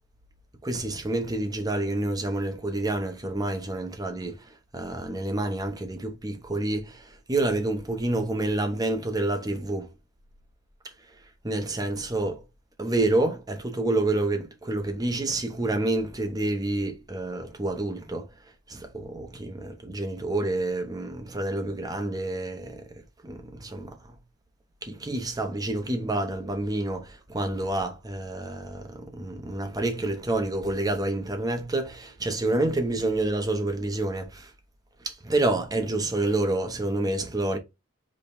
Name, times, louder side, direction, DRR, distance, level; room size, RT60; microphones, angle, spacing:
voice 1, 0.6-4.4 4.7-9.9 11.4-12.4 12.8-18.3 18.7-22.8 23.2-24.0 24.8-34.5 35.0-37.6, right 2 dB, 15° right, 0.7 m, -28 dB
5.2 x 2.3 x 4.1 m
head